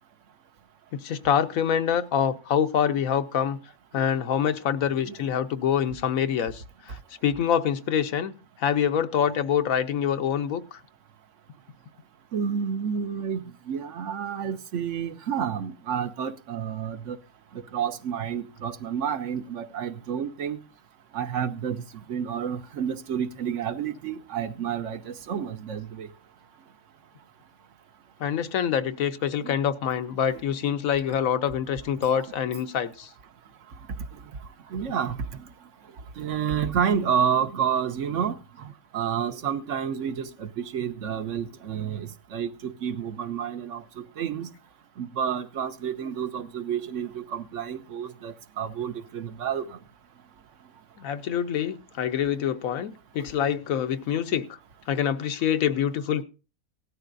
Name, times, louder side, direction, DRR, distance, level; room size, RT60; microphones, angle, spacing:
voice 1, 1.0-3.6 3.9-7.0 7.2-8.3 8.6-10.8 28.2-33.1 51.0-54.5 54.9-56.2, left 8 dB, 90° left, 1.2 m, -25 dB
voice 2, 12.3-17.2 17.7-20.6 21.1-21.8 22.1-26.1 29.4-29.6 34.7-35.4 36.2-44.5 45.0-49.8, right 8 dB, 65° right, 1.1 m, -30 dB
17.0 x 12.5 x 2.6 m
omnidirectional pair, 1.4 m